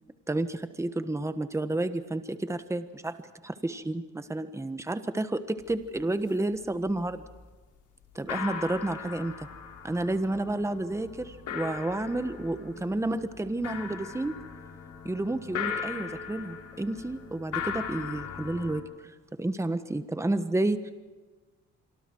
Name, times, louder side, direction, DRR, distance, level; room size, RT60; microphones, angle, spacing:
voice 1, 0.3-3.2 3.4-7.2 8.1-9.5 9.8-14.4 15.0-20.9, right 2 dB, 10° right, 10 dB, 1.3 m, -31 dB
sound 1, 5.6-5.7 6.0-6.5 6.9-7.4 7.8-7.9 8.1-18.8, left 7 dB, 80° left, 4.0 m, -39 dB
26.5 x 24.5 x 4.7 m, 1.3 s
cardioid pair, 90°, 30 cm